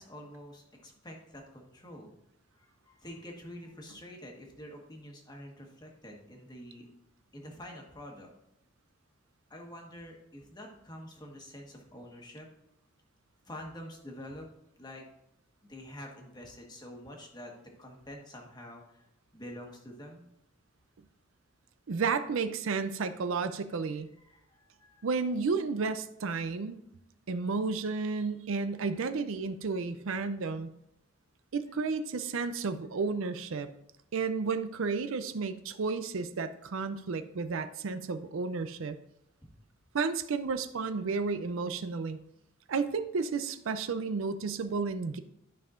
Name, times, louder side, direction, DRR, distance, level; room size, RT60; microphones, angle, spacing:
voice 1, 0.0-2.1 2.6-6.9 7.3-8.3 9.5-12.5 13.4-14.5 14.8-15.0 15.7-17.5 17.8-19.1 19.3-20.3 24.2-25.1 39.4-39.5, left 1 dB, 20° left, 1 dB, 1.3 m, -47 dB
voice 2, 21.9-24.1 25.0-26.8 27.3-30.7 31.5-33.7 34.1-39.0 39.9-42.2 42.7-45.2, right 4 dB, 70° right, 10 dB, 0.5 m, -32 dB
12.5 x 5.5 x 2.5 m, 0.78 s
head